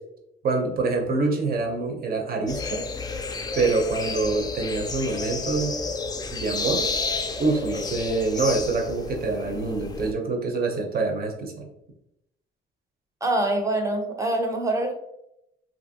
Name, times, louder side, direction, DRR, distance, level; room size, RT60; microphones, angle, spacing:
voice 1, 0.4-2.9 3.5-5.8 6.3-6.9 7.4-11.7, right 3 dB, 50° right, 2 dB, 0.7 m, -26 dB
sound 1, 2.5-10.1, left 4 dB, 20° left, 0.3 m, -31 dB
voice 2, 13.2-14.9, right 1 dB, 15° right, 3 dB, 0.6 m, -24 dB
2.9 x 2.6 x 2.7 m, 0.82 s
cardioid pair, 90°, 20 cm